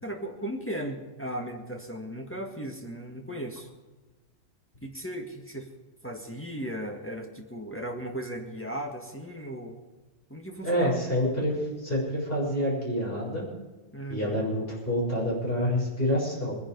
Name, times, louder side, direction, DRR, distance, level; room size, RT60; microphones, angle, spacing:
voice 1, 0.0-3.7 4.8-5.7 6.0-9.8 10.3-11.0 13.9-14.4, right 1 dB, 10° left, 2 dB, 1.8 m, -36 dB
voice 2, 10.6-13.4 14.1-16.6, equal, 45° left, -5 dB, 7.0 m, -27 dB
22.0 x 10.5 x 5.3 m, 1.2 s
omnidirectional pair, 1.3 m